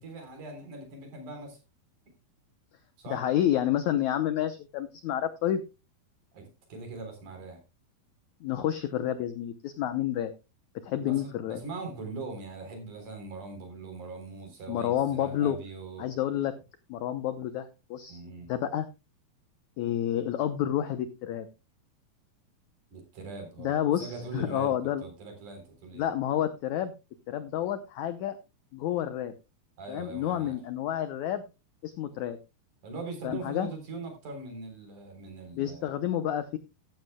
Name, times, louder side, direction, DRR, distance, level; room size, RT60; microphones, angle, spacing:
voice 1, 0.0-1.6 3.0-3.2 6.3-7.6 11.0-16.1 18.1-18.5 22.9-24.7 25.0-26.1 29.8-30.6 32.8-36.0, right 3 dB, 55° right, 4 dB, 5.1 m, -41 dB
voice 2, 3.1-5.6 8.4-10.3 10.8-11.6 14.7-15.6 16.0-16.5 16.9-18.2 18.5-18.9 19.8-21.5 23.6-25.0 25.9-26.9 27.3-28.4 28.7-29.3 29.9-31.4 31.8-32.4 33.2-33.7 35.5-36.6, left 11 dB, 80° left, 11 dB, 1.7 m, -29 dB
14.5 x 13.0 x 2.2 m, 0.27 s
omnidirectional pair, 4.5 m